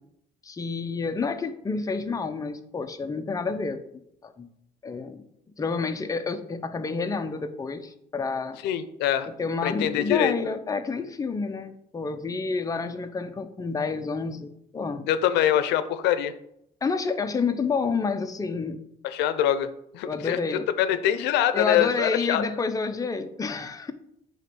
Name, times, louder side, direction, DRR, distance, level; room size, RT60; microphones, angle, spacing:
voice 1, 0.4-4.5 4.8-5.2 5.6-8.6 9.2-15.1 16.8-18.8 20.0-20.7 21.5-23.9, left 4 dB, 20° left, 7 dB, 0.7 m, -29 dB
voice 2, 8.6-9.3 9.6-10.5 15.1-16.3 19.0-19.7 19.9-20.4 20.8-22.4, left 11 dB, 85° left, 12 dB, 0.6 m, -24 dB
8.9 x 3.1 x 6.1 m, 0.77 s
cardioid pair, 110°, 17 cm